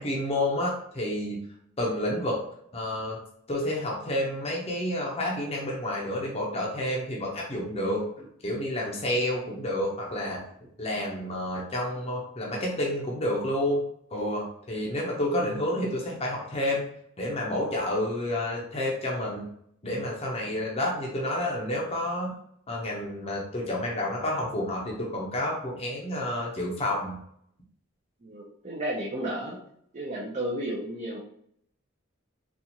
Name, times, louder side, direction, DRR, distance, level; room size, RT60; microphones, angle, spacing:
voice 1, 0.0-1.4 1.8-2.4 2.7-3.2 3.5-10.5 10.8-13.9 14.1-16.9 17.2-19.4 19.8-22.3 22.7-27.2, left 1 dB, 30° left, -3 dB, 0.7 m, -29 dB
voice 2, 28.2-29.6 29.9-31.2, right 1 dB, 35° right, -4 dB, 0.6 m, -32 dB
4.2 x 2.4 x 2.8 m, 0.69 s
head